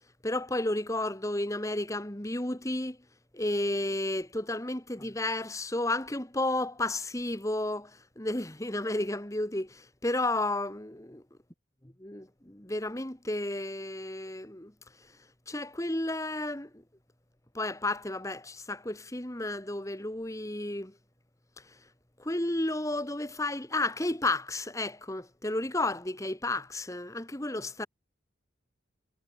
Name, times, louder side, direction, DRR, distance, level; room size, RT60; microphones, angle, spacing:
voice 1, 0.2-3.0 3.3-11.2 12.0-14.7 15.5-16.8 17.5-20.9 22.2-27.9, left 2 dB, 15° left, 1.6 m, -32 dB
head